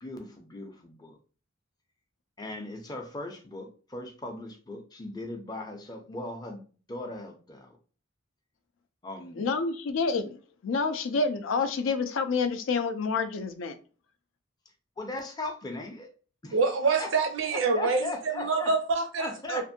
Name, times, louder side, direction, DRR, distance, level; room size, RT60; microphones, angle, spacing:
voice 1, 0.0-1.2 2.4-7.8 9.0-9.5 15.0-16.1 16.4-16.6 17.0-17.1 17.5-18.7 19.2-19.6, left 2 dB, 20° left, 0.5 m, -38 dB
voice 2, 9.3-13.8, left 4 dB, 75° left, 0.4 m, -28 dB
voice 3, 16.5-19.6, right 4 dB, 75° right, 0.5 m, -26 dB
2.6 x 2.5 x 2.6 m
head